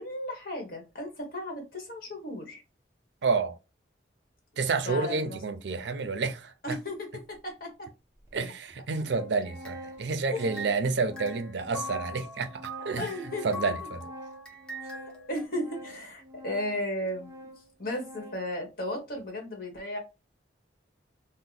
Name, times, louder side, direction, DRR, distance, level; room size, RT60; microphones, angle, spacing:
voice 1, 0.0-2.6 4.8-5.4 6.6-7.9 10.3-10.4 12.8-13.5 15.3-17.3 17.8-20.0, left 1 dB, 50° left, 1.3 m, -35 dB
voice 2, 3.2-3.6 4.6-6.8 8.3-13.1 13.4-14.1, right 4 dB, 70° right, 0.5 m, -29 dB
Organ, 7.3-7.4 8.3-8.4 8.7-18.6, equal, 15° right, 0.5 m, -46 dB
sound 1, 9.4-10.9 11.2-15.5, left 1 dB, 5° left, 0.8 m, -42 dB
2.8 x 2.1 x 3.9 m
head